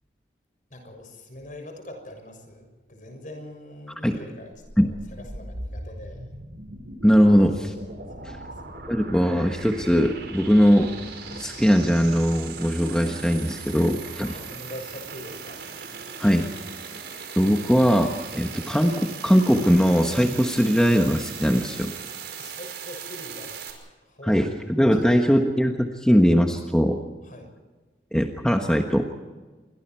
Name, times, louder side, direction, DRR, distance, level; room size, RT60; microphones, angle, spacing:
voice 1, 0.7-4.5 4.8-6.3 8.2-8.4 14.2-15.6 22.4-23.7 24.0-24.4 24.9-25.0 27.2-27.5, left 1 dB, 45° left, 5 dB, 6.6 m, -42 dB
sound 1, 4.5-23.7, right 4 dB, 85° right, 5.3 m, -39 dB
voice 2, 7.0-7.7 8.2-8.4 8.9-10.9 11.3-14.4 16.2-16.5 17.4-21.9 24.2-27.0 28.1-29.1, equal, 5° left, 3 dB, 1.4 m, -20 dB
28.5 x 24.5 x 4.7 m, 1.3 s
head